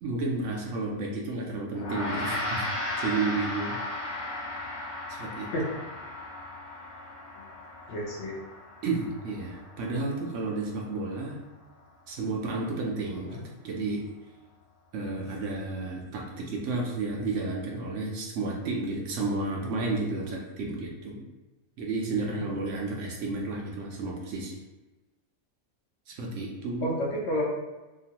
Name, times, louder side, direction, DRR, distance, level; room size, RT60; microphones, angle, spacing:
voice 1, 0.0-2.7 3.0-3.8 5.1-5.5 8.8-11.4 12.1-13.4 13.6-14.0 14.9-21.3 21.8-24.5 26.1-27.0, right 3 dB, 70° right, -1 dB, 0.8 m, -32 dB
Gong, 1.7-11.3, left 1 dB, 80° left, 1.2 m, -36 dB
voice 2, 7.9-8.4 13.3-13.4 22.1-22.5 26.8-27.4, equal, 60° left, -3 dB, 0.8 m, -31 dB
2.9 x 2.4 x 2.8 m, 1.1 s
omnidirectional pair, 1.5 m